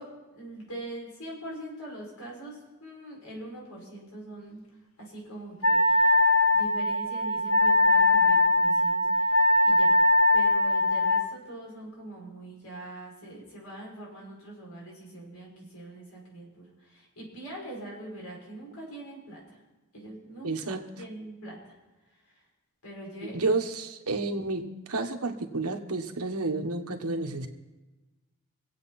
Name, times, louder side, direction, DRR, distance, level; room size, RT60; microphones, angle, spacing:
voice 1, 0.0-4.6 5.0-6.2 6.5-10.0 10.3-19.6 19.9-21.7 22.8-23.4, right 1 dB, 85° left, -3 dB, 6.0 m, -43 dB
Wind instrument woodwind instrument, 5.6-11.3, left 2 dB, 70° left, 1.7 m, -21 dB
voice 2, 20.4-20.8 23.3-27.5, right 3 dB, 80° right, 5 dB, 1.4 m, -30 dB
25.5 x 8.6 x 4.3 m, 1.2 s
head